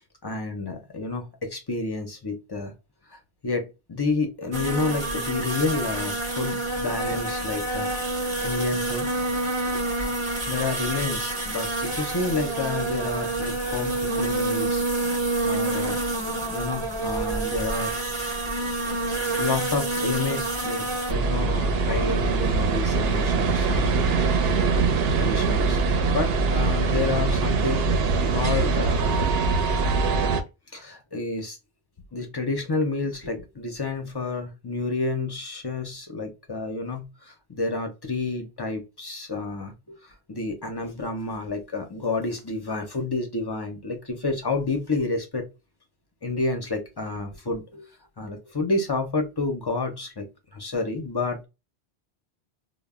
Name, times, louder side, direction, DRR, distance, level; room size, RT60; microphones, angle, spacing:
voice 1, 0.2-2.7 3.1-7.9 8.2-9.1 10.5-14.8 15.4-16.0 16.5-17.9 19.0-23.9 24.7-27.9 28.3-29.3 30.7-31.6 32.1-45.5 46.2-47.9 48.2-50.3 50.5-51.4, left 3 dB, 40° left, 0.3 m, -30 dB
sound 1, 4.5-21.1, right 2 dB, 30° right, 0.7 m, -28 dB
sound 2, 21.1-30.4, right 4 dB, 65° right, 0.8 m, -23 dB
2.2 x 2.0 x 3.3 m
omnidirectional pair, 1.1 m